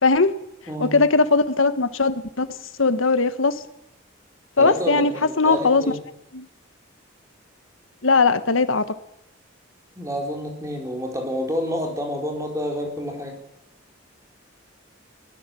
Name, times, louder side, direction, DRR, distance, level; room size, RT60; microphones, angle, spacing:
voice 1, 0.0-0.3 0.8-2.5 2.8-3.6 4.6-5.1 5.4-5.8 6.3-6.5 8.0-8.9, left 4 dB, 80° left, 12 dB, 1.4 m, -19 dB
voice 2, 0.7-1.0 4.6-6.0 10.0-13.4, equal, 15° right, 2 dB, 4.2 m, -28 dB
22.5 x 18.5 x 7.7 m, 0.86 s
head